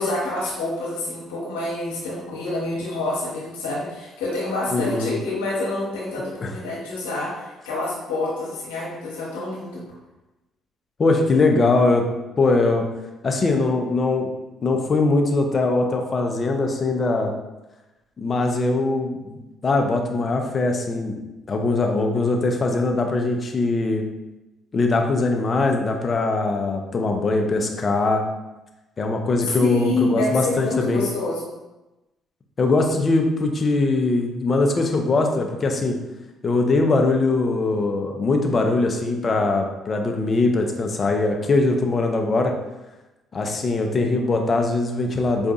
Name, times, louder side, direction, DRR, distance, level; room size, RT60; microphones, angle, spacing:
voice 1, 0.0-9.8 29.6-31.5, left 2 dB, 85° left, -6 dB, 1.0 m, -27 dB
voice 2, 4.7-5.1 6.4-6.5 11.0-12.1 12.4-12.8 13.2-14.3 14.6-17.3 18.2-21.2 21.5-24.0 24.7-28.2 29.0-31.1 32.6-36.0 36.4-42.5 43.3-45.5, left 3 dB, 40° left, 3 dB, 0.6 m, -21 dB
4.8 x 2.5 x 2.4 m, 1.0 s
hypercardioid pair, 50°, 0 cm